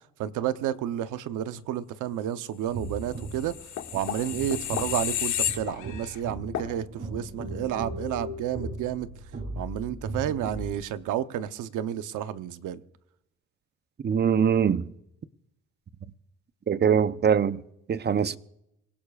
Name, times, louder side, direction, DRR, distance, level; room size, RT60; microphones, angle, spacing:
voice 1, 0.2-3.6 3.9-9.1 9.6-12.8, right 11 dB, 90° right, 0.9 m, -31 dB
sound 1, 2.6-10.7, right 2 dB, 50° right, 7.2 m, -38 dB
sound 2, 3.2-6.2 6.5-6.7, left 10 dB, 75° left, 1.9 m, -31 dB
voice 2, 14.0-14.9 16.7-17.6 17.9-18.4, right 7 dB, 35° right, 0.7 m, -22 dB
26.5 x 17.0 x 2.4 m
cardioid pair, 90°, 30 cm